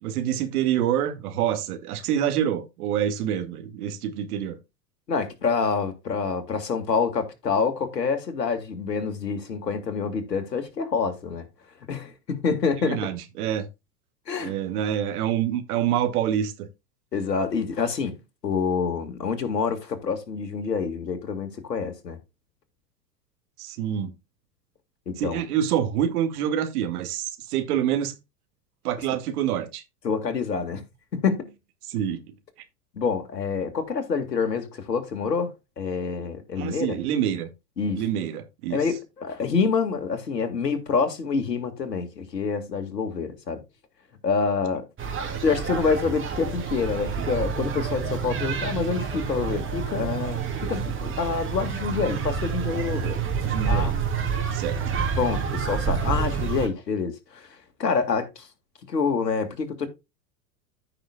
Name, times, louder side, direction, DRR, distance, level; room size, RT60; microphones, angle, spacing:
voice 1, 0.0-4.6 12.8-13.7 14.4-16.7 23.6-24.1 25.2-28.2 28.8-29.8 31.9-32.2 36.6-37.5 38.0-38.8 53.4-53.9 54.5-54.8, right 10 dB, 65° right, 2.1 m, -26 dB
voice 2, 5.1-11.5 11.9-13.1 14.3-14.5 17.1-18.2 18.4-22.2 25.1-25.4 30.0-30.8 31.1-31.5 32.9-37.0 37.8-38.1 38.7-43.6 44.2-44.9 45.4-53.2 53.7-53.9 55.2-58.5 58.9-59.9, left 5 dB, 85° left, 2.0 m, -27 dB
sound 1, 45.0-56.7, right 6 dB, 25° right, 2.8 m, -28 dB
14.5 x 5.9 x 2.3 m
hypercardioid pair, 95°, 48 cm